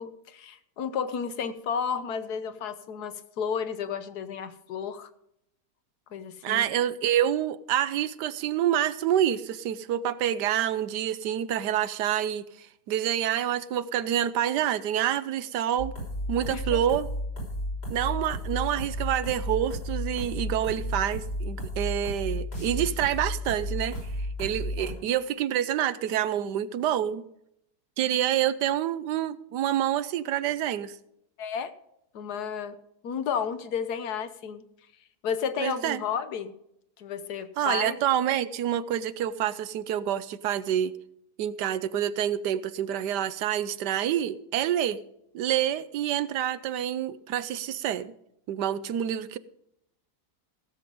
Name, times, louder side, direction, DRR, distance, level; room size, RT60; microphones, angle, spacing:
voice 1, 0.0-5.1 6.1-6.7 16.5-16.8 24.8-25.1 31.4-31.7 32.1-32.8 33.0-34.6 35.2-36.5 37.0-38.0, left 7 dB, 70° left, 1.5 m, -32 dB
voice 2, 6.4-15.9 16.3-17.1 17.9-23.9 24.4-27.2 28.0-31.0 35.6-36.0 37.6-40.9 41.4-45.0 45.3-48.1 48.5-49.4, right 11 dB, 85° right, 1.3 m, -27 dB
sound 1, 15.8-24.9, equal, 85° left, 6.5 m, -33 dB
16.5 x 7.7 x 5.3 m
omnidirectional pair, 1.8 m